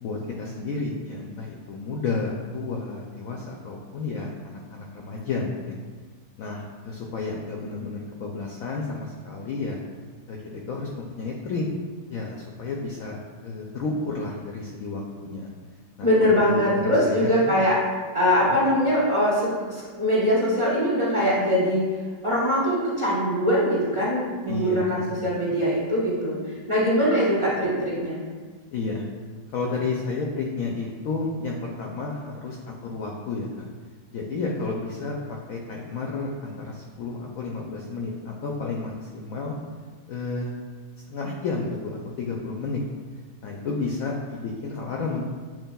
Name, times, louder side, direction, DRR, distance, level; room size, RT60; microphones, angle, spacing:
voice 1, 0.0-5.8 6.4-9.8 10.3-11.7 12.1-13.2 13.4-15.5 16.0-17.6 18.4-18.6 24.5-25.3 28.7-29.0 29.5-33.6 34.1-39.6 40.1-40.5 41.1-42.8 43.4-45.3, left 3 dB, 75° left, 0 dB, 0.8 m, -31 dB
voice 2, 16.0-17.8 18.1-21.9 22.2-26.4 26.7-28.2, equal, 20° right, -8 dB, 1.0 m, -22 dB
7.1 x 3.1 x 2.3 m, 1.5 s
omnidirectional pair, 1.9 m